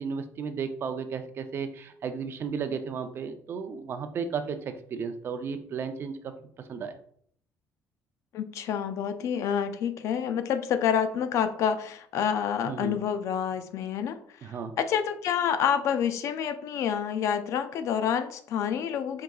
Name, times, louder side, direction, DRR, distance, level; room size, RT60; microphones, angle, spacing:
voice 1, 0.0-4.6 4.9-6.1 6.7-7.0 12.7-13.0 14.4-14.7, right 6 dB, 45° right, 8 dB, 0.4 m, -34 dB
voice 2, 8.3-14.2 14.8-19.2, left 8 dB, 65° left, 10 dB, 0.4 m, -28 dB
4.6 x 3.7 x 2.3 m, 0.63 s
cardioid pair, 125°, 6 cm